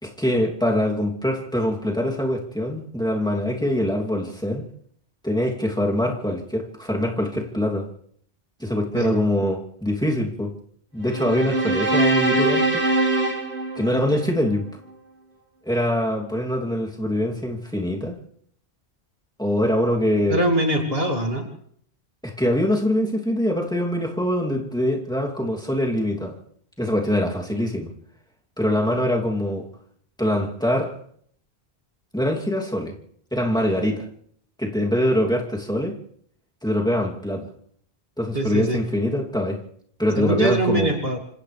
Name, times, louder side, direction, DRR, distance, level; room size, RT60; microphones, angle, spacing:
voice 1, 0.0-4.6 5.2-7.9 8.6-10.5 10.9-12.8 13.7-14.6 15.6-18.2 19.4-20.4 22.2-26.3 26.8-27.9 28.6-29.7 30.2-31.0 32.1-32.9 33.3-34.0 34.6-36.0 36.6-37.5 38.2-39.6 40.0-41.0, left 1 dB, 5° left, -1 dB, 3.0 m, -23 dB
sound 1, 11.1-14.5, right 2 dB, 90° right, 3.8 m, -22 dB
voice 2, 20.3-21.5 38.3-38.8 40.2-41.2, right 1 dB, 65° right, 1 dB, 3.1 m, -23 dB
28.5 x 26.5 x 3.4 m, 0.65 s
omnidirectional pair, 1.1 m